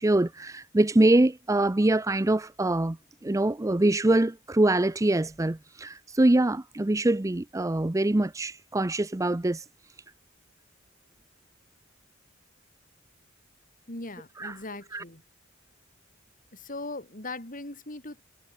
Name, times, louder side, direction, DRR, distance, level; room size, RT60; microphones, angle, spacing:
voice 1, 0.0-3.0 3.2-9.6 14.4-14.5 14.9-15.0, right 2 dB, 15° right, 0.5 m, -24 dB
voice 2, 13.9-15.2 16.5-18.2, left 2 dB, 40° left, 5.1 m, -39 dB
head